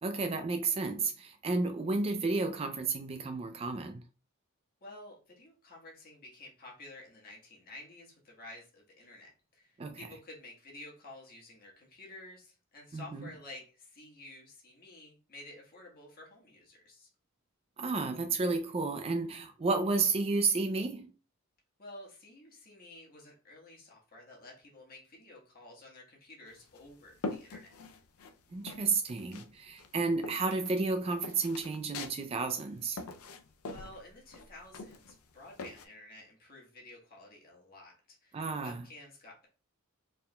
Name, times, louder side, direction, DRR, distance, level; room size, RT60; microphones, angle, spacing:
voice 1, 0.0-4.0 9.8-10.0 12.9-13.3 17.8-21.1 28.5-33.0 38.3-38.9, right 3 dB, 25° right, 0.3 m, -32 dB
voice 2, 4.8-17.1 21.8-27.7 33.7-39.4, left 2 dB, 45° left, 1.4 m, -51 dB
sound 1, 26.5-28.3 28.7-29.5 29.8-35.9, left 3 dB, 85° left, 0.5 m, -43 dB
4.5 x 3.5 x 2.2 m
head